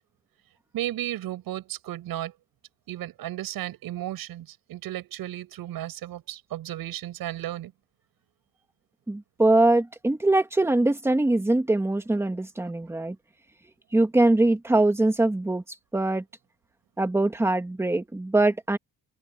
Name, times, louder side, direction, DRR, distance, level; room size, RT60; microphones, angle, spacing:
voice 1, 0.7-2.3 2.9-7.7, right 13 dB, 70° right, 7.1 m, -34 dB
voice 2, 9.1-13.2 13.9-15.6 15.9-16.2 17.0-18.8, right 2 dB, 5° right, 2.0 m, -22 dB
cardioid pair, 165°, 37 cm